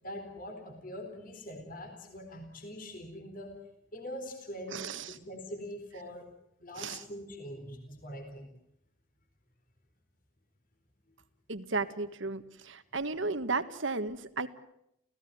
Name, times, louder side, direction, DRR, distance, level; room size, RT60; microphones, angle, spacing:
voice 1, 0.0-3.5 3.9-6.3 6.6-8.5, equal, 45° left, 5 dB, 4.2 m, -43 dB
voice 2, 4.7-5.2 6.8-7.0 11.5-14.5, right 3 dB, 70° right, 12 dB, 1.6 m, -34 dB
29.5 x 16.5 x 9.5 m, 0.80 s
head